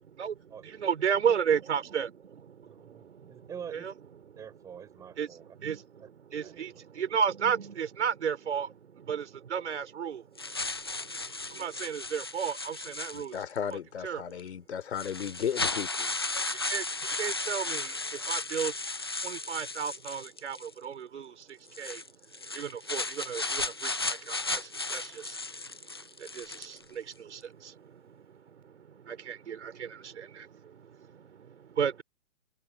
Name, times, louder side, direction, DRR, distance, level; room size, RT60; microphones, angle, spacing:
voice 1, 0.8-2.1 3.7-3.9 5.2-5.3 5.6-5.8 6.3-6.7 7.0-8.7 9.1-9.2 9.5-10.2 11.6-13.3 14.0-14.2 16.7-16.8 17.2-17.8 18.3-18.7 19.2-20.6 20.8-21.2 21.8-21.9 22.6-23.4 24.1-24.2 24.5-24.6 24.9-25.0 26.4-26.5 29.3-29.9 31.8-32.0, right 7 dB, 65° right, 4.7 m, -31 dB
voice 2, 2.7-3.9 4.4-5.6 6.0-6.1 6.4-6.6, right 8 dB, 10° right, 3.6 m, -46 dB
sound 1, 10.4-13.6 14.4-14.5 15.0-20.7 21.7-26.8, left 3 dB, 20° left, 0.4 m, -35 dB
voice 3, 13.1-16.1, left 8 dB, 55° left, 3.6 m, -35 dB
hypercardioid pair, 165°, 38 cm